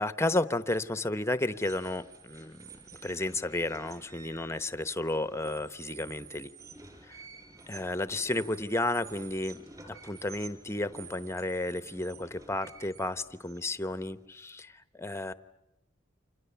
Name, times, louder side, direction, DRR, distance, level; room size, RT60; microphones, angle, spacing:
voice 1, 0.0-2.7 3.0-6.5 7.1-7.2 7.7-9.6 9.9-14.7 15.0-15.3, left 2 dB, 15° left, 12 dB, 0.9 m, -32 dB
sound 1, 1.5-14.2, right 5 dB, 20° right, 6.6 m, -51 dB
30.0 x 27.5 x 7.0 m, 0.93 s
head